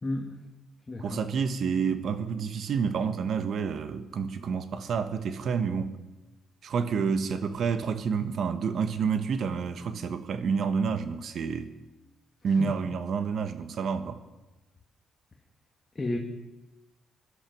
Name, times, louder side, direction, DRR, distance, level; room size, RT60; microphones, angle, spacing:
voice 1, 0.0-0.4 0.9-1.2 12.6-12.7 15.9-16.2, left 2 dB, 25° left, 1.7 m, -32 dB
voice 2, 1.0-6.0 6.6-11.7 12.4-14.2, right 6 dB, 60° right, 1.2 m, -29 dB
15.5 x 12.0 x 6.0 m
cardioid pair, 90°, 0 cm